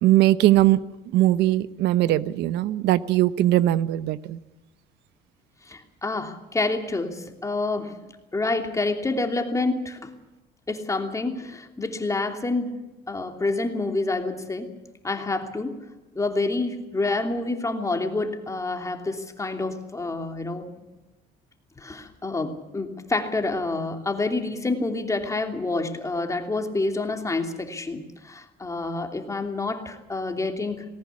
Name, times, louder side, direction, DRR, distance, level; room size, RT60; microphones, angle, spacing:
voice 1, 0.0-0.8 1.1-4.4, right 14 dB, 85° right, 16 dB, 0.9 m, -20 dB
voice 2, 5.6-8.0 8.3-10.1 10.7-12.8 13.1-14.7 15.0-15.8 16.1-20.8 21.8-30.8, left 3 dB, 20° left, 4 dB, 3.0 m, -28 dB
19.5 x 18.5 x 8.4 m, 1.1 s
cardioid pair, 110°, 17 cm